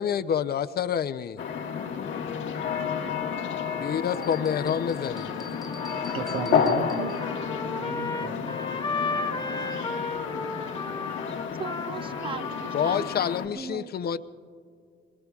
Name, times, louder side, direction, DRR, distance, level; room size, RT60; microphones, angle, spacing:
voice 1, 0.0-1.4 3.8-5.3 12.7-14.2, left 8 dB, 50° left, 12 dB, 0.6 m, -27 dB
sound 1, 1.4-13.5, left 7 dB, 75° left, 1.3 m, -31 dB
voice 2, 1.7-2.3 2.8-2.9 6.0-7.2 7.7-8.6, right 5 dB, 80° right, 6 dB, 1.2 m, -36 dB
sound 2, 4.2-7.4, left 3 dB, ahead, 0.9 m, -47 dB
Trumpet, 5.5-13.2, left 3 dB, 25° left, 1.0 m, -34 dB
voice 3, 11.6-13.9, right 6 dB, 25° right, 14 dB, 0.5 m, -38 dB
25.5 x 22.0 x 2.4 m, 2.2 s
cardioid pair, 90°, 20 cm